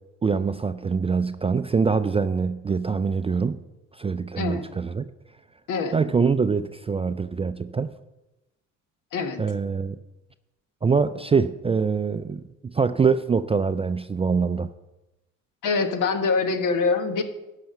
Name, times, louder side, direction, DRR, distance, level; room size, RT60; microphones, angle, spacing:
voice 1, 0.2-3.6 4.0-5.1 5.9-7.9 9.4-10.0 10.8-14.7, right 5 dB, 20° right, 11 dB, 0.3 m, -24 dB
voice 2, 4.4-4.7 5.7-5.9 9.1-9.4 15.6-17.2, left 4 dB, 65° left, 8 dB, 1.3 m, -24 dB
11.0 x 5.8 x 6.5 m, 1.0 s
supercardioid pair, 75°, 34 cm